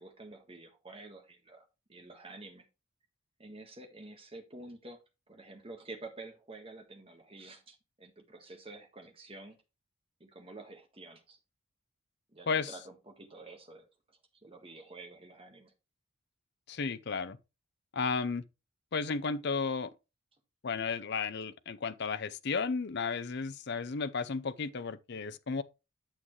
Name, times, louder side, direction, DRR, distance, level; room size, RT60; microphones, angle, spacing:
voice 1, 0.0-2.6 3.4-5.0 5.3-9.6 10.2-11.4 12.3-15.7, right 2 dB, 25° right, 1.6 m, -49 dB
voice 2, 16.7-17.4 17.9-18.4 18.9-19.9 20.6-25.6, left 5 dB, 50° left, 0.6 m, -33 dB
8.8 x 7.3 x 3.2 m
head